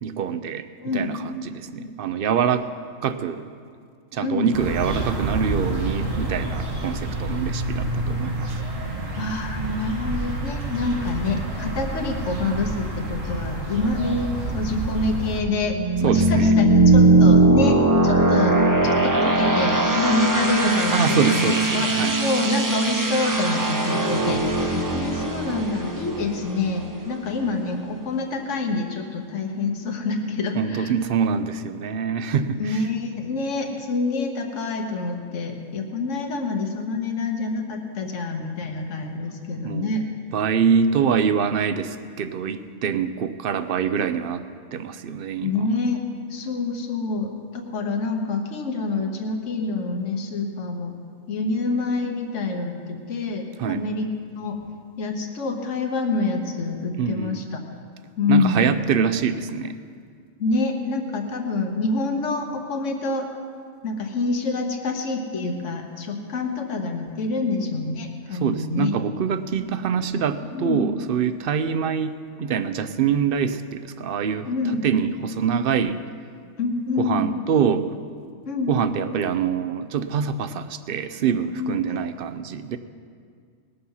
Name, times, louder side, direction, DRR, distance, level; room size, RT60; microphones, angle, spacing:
voice 1, 0.0-0.7 0.9-2.7 3.0-3.4 4.1-8.6 16.0-16.6 20.9-22.2 30.6-32.8 39.6-39.9 40.3-44.5 44.7-45.5 53.6-53.8 57.0-57.4 58.3-59.8 68.3-74.5 74.8-76.0 77.0-77.9 78.7-82.8, right 7 dB, 60° right, 11 dB, 0.6 m, -25 dB
voice 2, 0.8-1.1 1.8-1.9 4.2-4.5 9.2-18.5 18.8-30.9 32.6-40.0 45.4-46.0 46.3-50.9 51.3-54.1 54.4-54.6 55.0-57.6 58.2-58.6 60.4-63.3 63.8-68.9 70.5-70.8 74.4-74.9 76.6-77.2 78.5-78.7 81.6-82.0, left 3 dB, 70° left, 3 dB, 1.5 m, -26 dB
sound 1, 4.5-15.4, right 2 dB, 85° right, 1.9 m, -28 dB
sound 2, 14.7-27.3, right 2 dB, 20° right, 0.6 m, -20 dB
19.5 x 6.8 x 5.5 m, 2.1 s
omnidirectional pair, 1.3 m